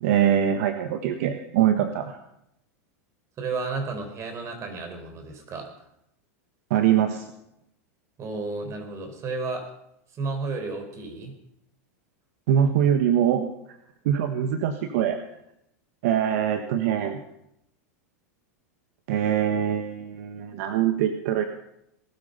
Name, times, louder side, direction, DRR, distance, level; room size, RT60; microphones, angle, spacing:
voice 1, 0.0-2.2 6.7-7.3 12.5-13.8 14.0-15.2 16.0-17.2 19.1-21.4, right 9 dB, 65° right, 7 dB, 1.4 m, -23 dB
voice 2, 3.4-5.7 8.2-9.7 10.1-11.4, right 3 dB, 35° right, 6 dB, 4.7 m, -32 dB
19.5 x 12.5 x 5.6 m, 0.79 s
hypercardioid pair, 110°, 9 cm